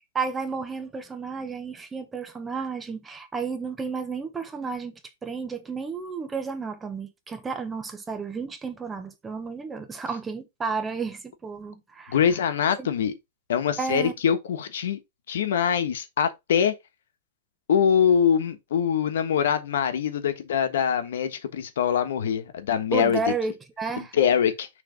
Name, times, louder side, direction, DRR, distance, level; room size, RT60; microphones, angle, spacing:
voice 1, 0.1-12.2 12.8-12.9 13.8-14.2 22.9-24.2, right 4 dB, 10° right, 0.9 m, -32 dB
voice 2, 12.1-13.1 13.5-15.0 15.3-16.7 17.7-23.2 24.0-24.7, left 8 dB, 80° left, 1.2 m, -23 dB
6.6 x 3.2 x 5.1 m
supercardioid pair, 160°, 0 cm